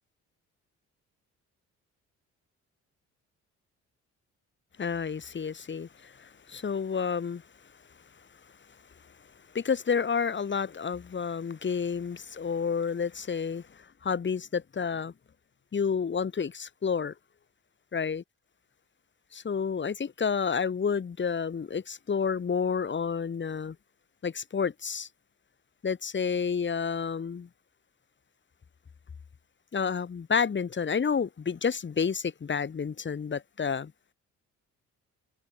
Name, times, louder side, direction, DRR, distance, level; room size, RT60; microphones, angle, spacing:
voice 1, 4.8-7.4 9.5-15.1 15.7-17.1 17.9-18.2 19.3-23.8 24.2-25.1 25.8-27.5 29.7-33.9, left 6 dB, 40° left, 2.8 m, -30 dB
cardioid pair, 90°, 30 cm